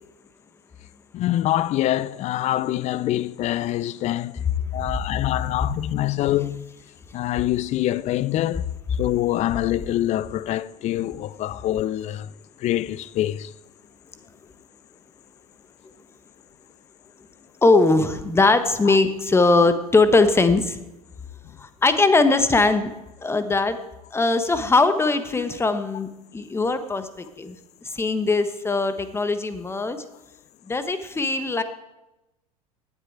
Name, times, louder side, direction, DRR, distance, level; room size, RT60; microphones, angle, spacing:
voice 1, 1.1-4.4 4.7-6.7 7.1-8.7 9.0-12.3 12.6-13.5 18.9-19.0, left 13 dB, 35° left, 0.5 m, -25 dB
voice 2, 17.6-20.6 21.8-22.9 23.2-23.8 24.1-26.1 26.3-27.0 27.4-27.5 28.0-30.0 30.7-31.6, left 3 dB, 15° left, 1.2 m, -20 dB
17.0 x 9.5 x 4.7 m
figure-of-eight pair, 75°, 20 cm